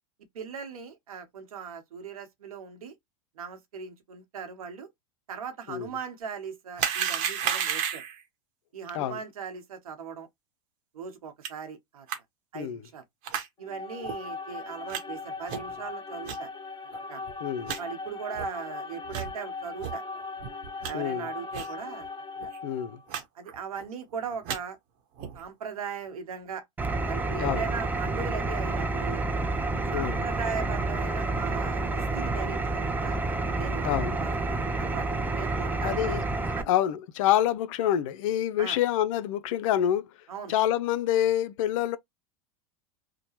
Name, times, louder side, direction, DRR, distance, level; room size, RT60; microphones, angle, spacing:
voice 1, 0.3-2.9 3.4-4.9 5.3-8.0 8.7-10.3 10.9-12.1 12.5-13.0 13.6-16.5 17.1-17.3 17.8-20.2 20.8-22.1 22.4-22.5 23.1-24.8 25.3-26.6 27.0-29.2 29.9-33.2 33.6-36.0 36.5-36.7 38.6-38.8 40.3-40.5, right 6 dB, 85° right, 1.0 m, -39 dB
sound 1, 6.8-8.2 11.4-11.5 12.1-12.2 13.2-13.5 14.0-14.1 14.9-15.0 15.5-15.7 16.2-16.4 16.9-17.0 17.3-17.4 17.7-17.8 18.3-18.5 19.1-19.3 19.8-19.9 20.4-20.9 21.5-21.7 22.0-22.1 22.4-22.6 23.1-23.2 23.5-23.9 24.3-24.6 25.2-25.4, right 8 dB, 50° right, 0.9 m, -32 dB
sound 2, 13.6-23.1, left 3 dB, 25° left, 0.8 m, -39 dB
voice 2, 17.4-17.7 20.9-21.3 22.6-23.0 27.4-27.6 29.9-30.2 33.8-34.2 35.8-36.2 36.7-40.1 40.5-42.0, left 11 dB, 65° left, 0.5 m, -26 dB
Engine, 26.8-36.6, right 2 dB, 10° right, 0.4 m, -29 dB
2.9 x 2.1 x 2.9 m
hypercardioid pair, 105°, 18 cm